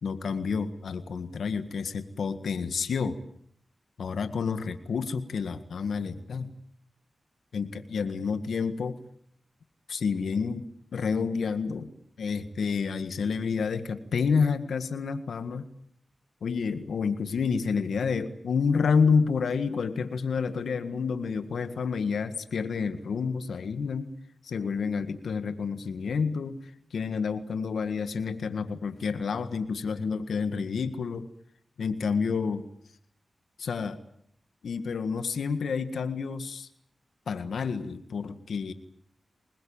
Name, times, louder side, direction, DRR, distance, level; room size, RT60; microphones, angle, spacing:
voice 1, 0.0-3.2 4.0-6.6 7.5-9.0 9.9-11.9 12.2-15.7 16.4-24.1 24.4-31.3 31.8-32.7 33.6-34.0 34.6-36.7 37.3-38.7, left 5 dB, 85° left, 10 dB, 1.8 m, -29 dB
24.5 x 21.5 x 8.9 m, 0.67 s
cardioid pair, 50°, 0 cm